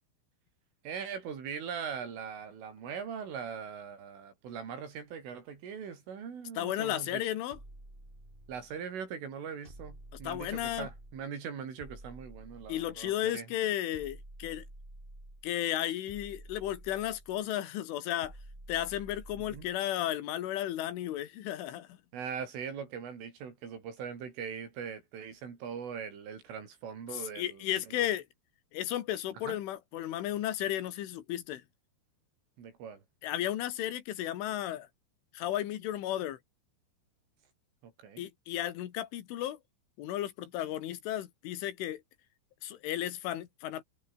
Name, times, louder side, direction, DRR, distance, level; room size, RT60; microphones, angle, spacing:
voice 1, 0.9-7.2 8.5-13.5 19.5-19.7 22.1-28.1 29.4-29.6 32.6-33.0 37.8-38.3, right 7 dB, 90° right, 7.5 m, -41 dB
voice 2, 6.6-7.6 10.2-10.9 12.7-14.6 15.4-18.3 18.7-21.9 27.1-28.3 28.7-31.6 33.2-34.9 35.3-36.4 38.2-39.6 40.0-42.0 42.6-43.8, left 12 dB, 85° left, 4.4 m, -34 dB
sound 1, 7.5-8.8 9.7-11.3 11.8-13.2 13.9-15.5 16.1-17.5 18.2-19.8, right 1 dB, 10° right, 6.5 m, -50 dB
omnidirectional pair, 5.5 m